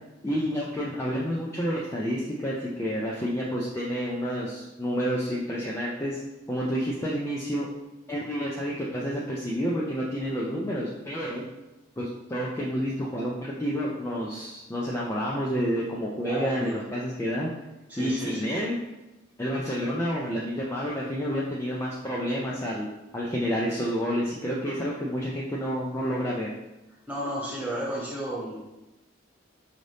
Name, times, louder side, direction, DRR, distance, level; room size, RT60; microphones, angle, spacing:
voice 1, 0.2-6.2 6.5-7.7 8.1-11.5 12.0-17.5 18.0-18.7 19.4-22.9 23.1-26.5, equal, 15° left, -5 dB, 0.4 m, -29 dB
voice 2, 16.2-16.8 17.9-18.5 27.1-28.6, right 1 dB, 10° right, -6 dB, 1.2 m, -32 dB
4.9 x 2.7 x 3.3 m, 1.0 s
head